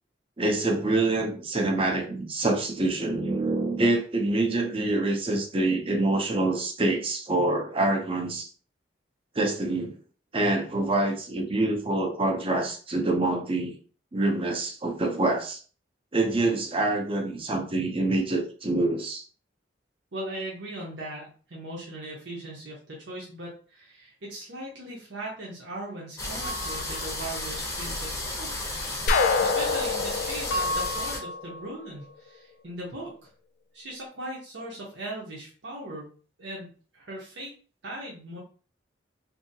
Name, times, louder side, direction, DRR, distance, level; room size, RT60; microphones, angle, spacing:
voice 1, 0.4-8.5 9.4-9.9 10.3-13.7 14.1-15.6 16.1-19.2, right 2 dB, 30° right, 2 dB, 0.6 m, -26 dB
voice 2, 20.1-28.5 29.4-33.3 33.7-36.1 36.4-37.5 37.8-38.4, right 1 dB, 75° right, -4 dB, 0.8 m, -39 dB
sound 1, 26.2-31.2, left 2 dB, 15° left, 0.7 m, -33 dB
sound 2, 26.4-27.5 30.5-31.9, left 1 dB, 90° left, 0.7 m, -33 dB
sound 3, 29.1-31.9, left 4 dB, 55° left, 0.4 m, -26 dB
2.7 x 2.7 x 2.7 m, 0.40 s
head